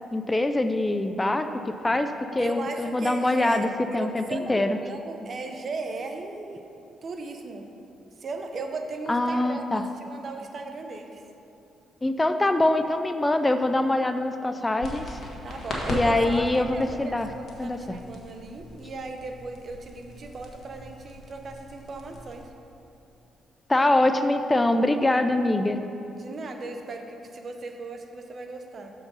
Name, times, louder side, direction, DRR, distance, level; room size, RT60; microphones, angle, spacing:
voice 1, 0.1-4.8 9.1-9.8 12.0-15.2 15.9-17.3 17.6-18.0 23.7-25.8, left 2 dB, 20° left, 8 dB, 0.4 m, -24 dB
voice 2, 2.4-3.7 3.9-6.6 7.0-7.7 8.2-11.2 15.4-22.5 26.2-28.9, right 3 dB, 50° right, 4 dB, 0.7 m, -37 dB
sound 1, 14.8-22.4, left 1 dB, 55° left, 1.4 m, -38 dB
6.7 x 4.7 x 5.4 m, 2.8 s
supercardioid pair, 65°, 0 cm